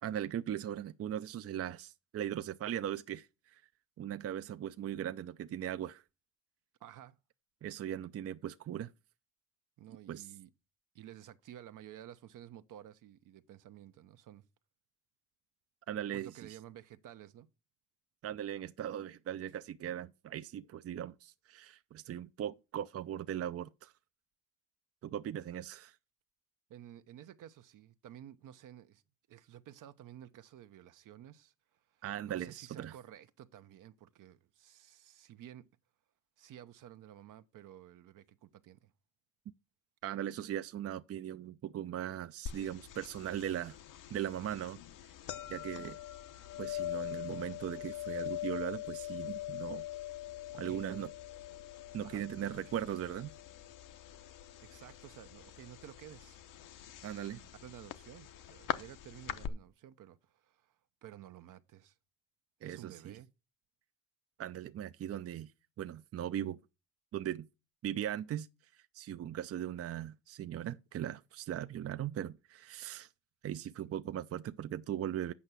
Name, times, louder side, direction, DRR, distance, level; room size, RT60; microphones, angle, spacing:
voice 1, 0.0-3.6 4.0-6.0 7.6-8.9 10.1-10.3 15.9-16.3 18.2-23.9 25.0-26.0 32.0-33.0 40.0-43.8 44.1-44.8 45.5-46.0 46.6-49.9 50.6-51.1 51.9-53.3 57.0-57.4 62.6-63.2 64.4-65.5 65.8-66.6 67.1-67.5 67.8-68.5 68.7-73.1 73.4-75.3, right 10 dB, 45° right, 0.5 m, -39 dB
voice 2, 6.8-7.2 9.8-10.5 10.9-14.4 16.1-17.5 26.7-29.0 29.3-35.7 36.4-38.9 50.5-51.1 52.0-52.5 54.6-56.4 57.4-62.0 62.6-63.3, right 11 dB, 70° right, 0.9 m, -53 dB
sound 1, 42.5-59.5, left 12 dB, 70° left, 0.9 m, -43 dB
8.4 x 5.6 x 6.1 m
cardioid pair, 80°, 33 cm